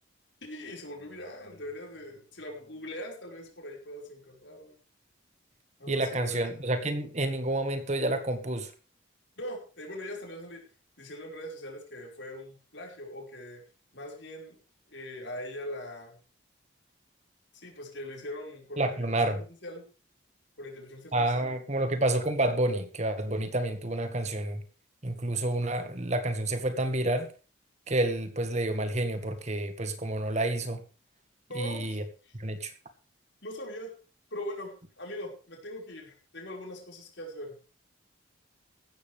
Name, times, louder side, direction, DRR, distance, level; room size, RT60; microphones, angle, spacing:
voice 1, 0.4-4.8 5.8-6.4 9.4-10.6 11.0-13.6 13.9-14.6 14.9-16.2 17.5-19.1 19.6-19.8 20.6-22.0 31.5-32.3 33.4-33.9 34.3-37.6, left 1 dB, 65° left, 5.3 m, -41 dB
voice 2, 5.9-8.7 18.8-19.4 21.1-24.6 25.0-27.3 27.9-30.8 31.5-32.0 32.3-32.7, right 1 dB, 35° right, 1.7 m, -29 dB
16.0 x 13.0 x 3.5 m
head